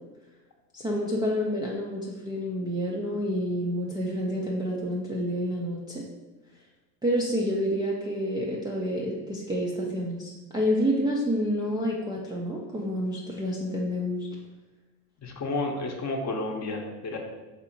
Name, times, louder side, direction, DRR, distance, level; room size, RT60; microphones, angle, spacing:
voice 1, 0.7-6.0 7.0-14.3, equal, 10° right, -4 dB, 0.3 m, -28 dB
voice 2, 15.2-17.2, left 2 dB, 35° left, 2 dB, 0.7 m, -31 dB
4.1 x 2.7 x 2.7 m, 1.2 s
hypercardioid pair, 65°, 50 cm